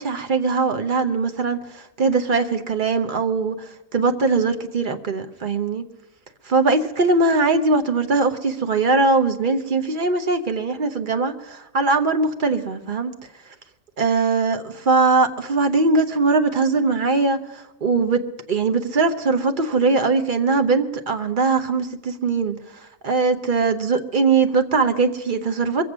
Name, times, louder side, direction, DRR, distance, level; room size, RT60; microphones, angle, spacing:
voice 1, 0.0-5.8 6.5-13.1 14.0-22.6 23.0-25.8, right 3 dB, 45° right, 8 dB, 0.9 m, -21 dB
22.5 x 7.8 x 6.2 m, 0.92 s
omnidirectional pair, 1.4 m